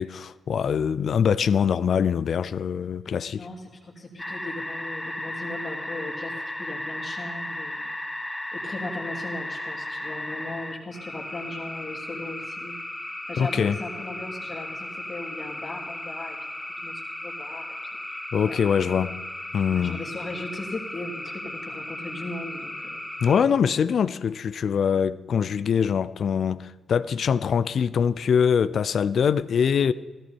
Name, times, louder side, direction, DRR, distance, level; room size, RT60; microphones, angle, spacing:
voice 1, 0.0-3.5 13.4-13.8 18.3-19.2 19.5-20.0 23.2-29.9, left 7 dB, 65° left, 0.5 m, -23 dB
voice 2, 3.3-6.3 6.6-7.9 8.5-12.7 13.3-16.4 16.8-17.7 18.1-19.1 19.7-23.0, left 2 dB, 45° left, 3.2 m, -37 dB
sound 1, 4.2-23.4, left 1 dB, 15° left, 1.1 m, -35 dB
14.5 x 14.0 x 4.5 m
supercardioid pair, 50°, 0 cm